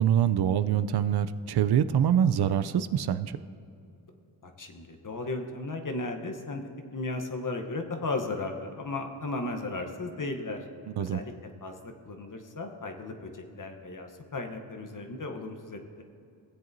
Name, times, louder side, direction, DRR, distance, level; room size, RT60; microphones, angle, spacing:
voice 1, 0.0-3.4 10.9-11.2, right 9 dB, 55° right, 13 dB, 0.5 m, -25 dB
voice 2, 4.4-6.6 6.9-10.6 11.0-11.3 11.6-16.0, left 2 dB, 40° left, 4 dB, 1.0 m, -35 dB
16.0 x 7.7 x 2.7 m, 2.6 s
cardioid pair, 55°, 48 cm